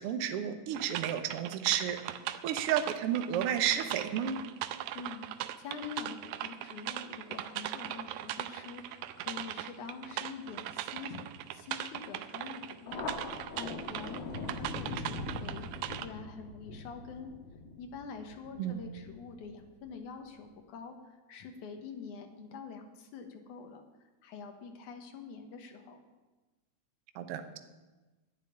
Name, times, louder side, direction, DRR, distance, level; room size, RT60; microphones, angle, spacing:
voice 1, 0.0-2.0 2.4-4.4 18.6-18.8 27.1-27.6, right 9 dB, 65° right, 7 dB, 1.7 m, -31 dB
sound 1, 0.7-16.1, right 13 dB, 85° right, 2.1 m, -39 dB
voice 2, 4.9-11.2 11.5-17.3 17.8-26.0, left 5 dB, 80° left, 4 dB, 2.8 m, -46 dB
Thunder, 12.9-19.9, left 3 dB, 55° left, 1.7 m, -42 dB
11.0 x 7.5 x 10.0 m, 1.2 s
omnidirectional pair, 3.5 m